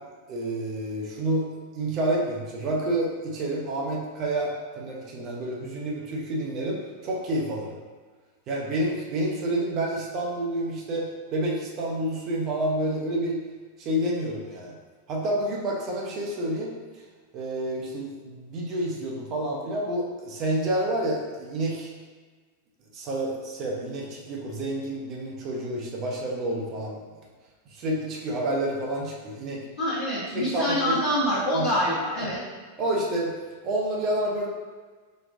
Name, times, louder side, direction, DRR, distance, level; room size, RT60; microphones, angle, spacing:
voice 1, 0.3-1.5 1.7-7.8 8.5-13.4 13.8-14.8 15.1-16.7 17.3-21.9 22.9-27.0 27.8-29.6 30.3-31.0 31.5-31.7 32.2-32.3 32.8-33.3 33.6-34.5, right 1 dB, 35° right, -2 dB, 0.6 m, -29 dB
voice 2, 29.8-32.4, equal, 45° left, -12 dB, 1.0 m, -26 dB
4.1 x 2.2 x 2.5 m, 1.4 s
figure-of-eight pair, 90°, 0 cm